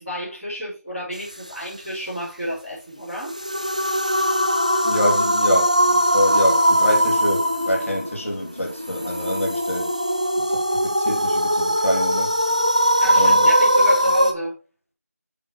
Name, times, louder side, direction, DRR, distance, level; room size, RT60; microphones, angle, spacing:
voice 1, 0.0-3.3 13.0-14.6, equal, ahead, 2.0 m, -31 dB
sound 1, 3.2-14.3, equal, 25° right, 0.4 m, -20 dB
voice 2, 4.8-9.9 10.4-12.3 13.1-13.5, equal, 50° left, 2.3 m, -25 dB
7.1 x 3.8 x 4.5 m
figure-of-eight pair, 180°, 9 cm